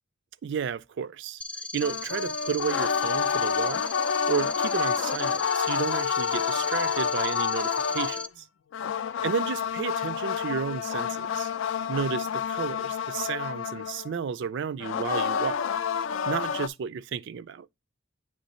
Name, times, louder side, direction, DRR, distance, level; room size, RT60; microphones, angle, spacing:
voice 1, 0.4-1.4 1.7-3.8 4.3-8.5 9.2-11.5 11.9-15.7 16.3-17.7, right 6 dB, 60° right, 0.4 m, -32 dB
sound 1, 1.4-8.3, left 2 dB, 5° left, 0.4 m, -38 dB
sound 2, 1.8-8.3 8.7-14.1 14.8-16.7, left 7 dB, 70° left, 0.4 m, -29 dB
8.0 x 3.3 x 4.1 m
head